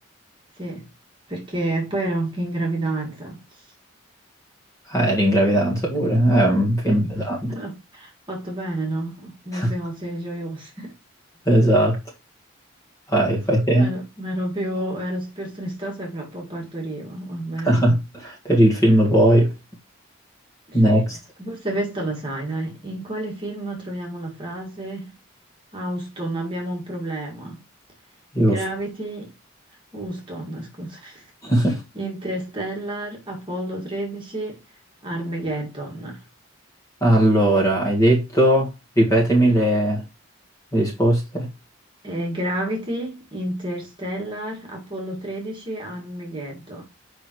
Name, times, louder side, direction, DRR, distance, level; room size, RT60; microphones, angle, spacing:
voice 1, 1.3-3.4 6.8-10.9 13.8-17.7 20.7-21.0 21.4-25.1 25.7-27.6 28.5-29.3 29.9-31.3 31.9-34.6 35.0-36.2 42.0-46.8, right 1 dB, 25° right, 2.0 m, -30 dB
voice 2, 4.9-7.5 9.5-9.7 11.5-12.0 13.1-13.9 17.6-19.5 20.7-21.2 28.3-28.6 31.4-31.8 37.0-40.0 40.7-41.5, right 1 dB, 15° left, 1.8 m, -18 dB
7.0 x 5.1 x 3.1 m
head